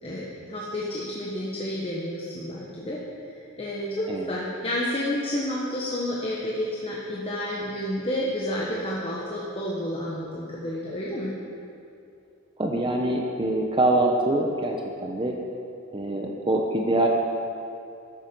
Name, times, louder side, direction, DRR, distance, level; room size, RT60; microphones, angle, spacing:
voice 1, 0.0-11.3, left 1 dB, 30° left, -4 dB, 1.2 m, -30 dB
voice 2, 12.6-15.4 15.9-17.1, right 1 dB, 25° right, 1 dB, 0.8 m, -24 dB
13.0 x 8.7 x 5.3 m, 2.7 s
head